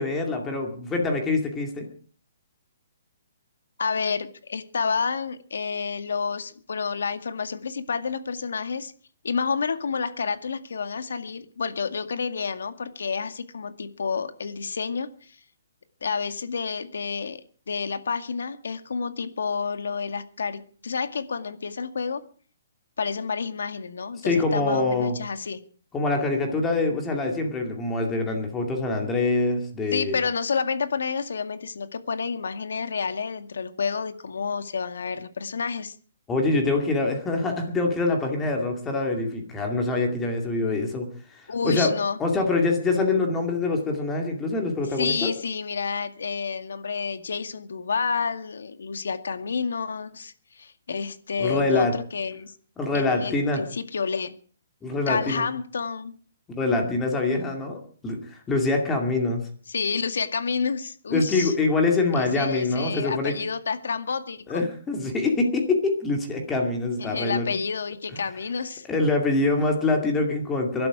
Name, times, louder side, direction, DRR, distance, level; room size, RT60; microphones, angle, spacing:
voice 1, 0.0-1.9 24.2-25.2 25.9-30.2 36.3-41.9 42.2-45.3 51.4-51.9 52.8-53.6 54.8-55.4 56.5-59.4 61.1-63.4 64.5-67.5 68.1-68.2 68.8-70.9, left 3 dB, 10° left, 2 dB, 2.3 m, -25 dB
voice 2, 3.8-8.9 9.2-15.3 16.0-17.4 17.7-22.2 23.0-25.6 29.9-35.9 41.5-42.2 45.0-52.5 52.9-54.3 55.1-56.1 59.7-61.5 62.2-64.6 67.0-68.9, left 5 dB, 85° left, 10 dB, 2.1 m, -29 dB
23.5 x 12.0 x 4.9 m, 0.44 s
hypercardioid pair, 175°, 0 cm